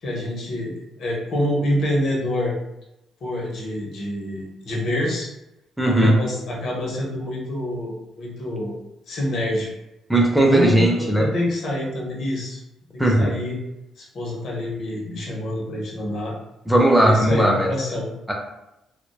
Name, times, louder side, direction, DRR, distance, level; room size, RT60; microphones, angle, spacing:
voice 1, 0.0-2.5 3.2-5.3 5.8-8.7 9.1-9.7 10.4-12.6 12.9-13.6 14.0-16.3 17.0-18.1, left 1 dB, 65° left, -3 dB, 0.8 m, -26 dB
voice 2, 5.8-6.1 10.1-11.3 13.0-13.3 16.7-17.7 18.3-18.4, right 1 dB, ahead, -1 dB, 0.5 m, -17 dB
2.5 x 2.1 x 2.2 m, 0.90 s
cardioid pair, 90°, 0 cm